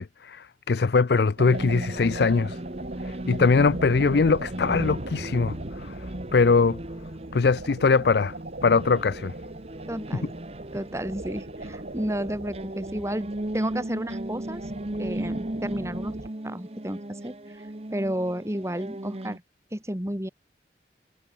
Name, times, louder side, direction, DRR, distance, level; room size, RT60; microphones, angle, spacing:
voice 1, 0.0-2.6 3.0-6.1 6.3-6.8 7.3-8.3 8.6-9.3, left 4 dB, 70° left, 0.5 m, -22 dB
sound 1, 1.4-19.4, right 1 dB, 35° right, 1.1 m, -37 dB
sound 2, 1.4-16.3, right 1 dB, 60° right, 1.9 m, -39 dB
voice 2, 9.9-10.3 10.7-14.7 15.0-16.2 16.4-19.4 19.7-20.3, equal, 15° right, 2.1 m, -32 dB
head